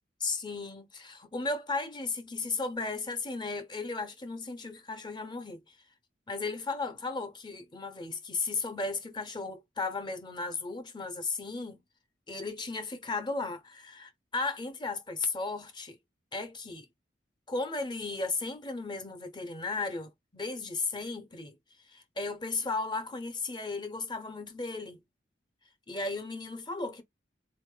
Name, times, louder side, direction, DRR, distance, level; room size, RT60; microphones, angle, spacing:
voice 1, 0.2-5.8 6.3-11.8 12.3-16.0 16.3-16.9 17.5-21.6 21.9-25.0 25.9-27.0, left 3 dB, 25° left, 0.7 m, -35 dB
3.9 x 2.6 x 3.7 m
head